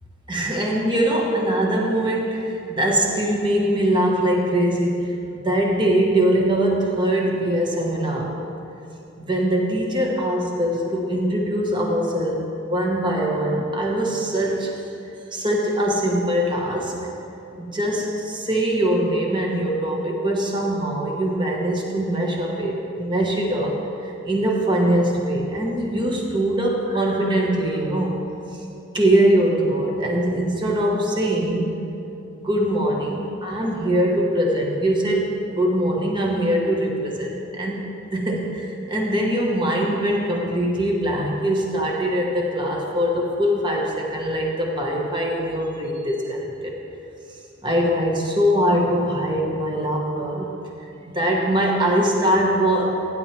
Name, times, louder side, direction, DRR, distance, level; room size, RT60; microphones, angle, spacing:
voice 1, 0.3-8.4 9.2-14.8 15.3-17.1 17.6-28.2 28.5-28.6 28.9-31.8 32.3-46.7 47.6-50.5 51.1-53.1, right 1 dB, 25° right, -1 dB, 1.4 m, -22 dB
15.5 x 10.5 x 3.4 m, 2.8 s
head